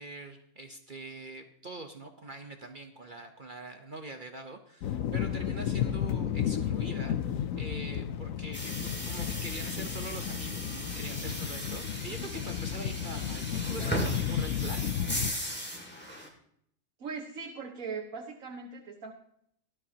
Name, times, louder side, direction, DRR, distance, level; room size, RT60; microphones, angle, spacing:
voice 1, 0.0-15.0, right 2 dB, 40° right, 5 dB, 1.2 m, -44 dB
sound 1, 4.8-15.3, left 9 dB, 85° left, 1.1 m, -33 dB
sound 2, 8.5-16.3, equal, 10° left, 2.4 m, -37 dB
voice 2, 17.0-19.1, right 5 dB, 90° right, 0 dB, 1.8 m, -40 dB
18.5 x 12.5 x 2.9 m, 0.68 s
omnidirectional pair, 1.4 m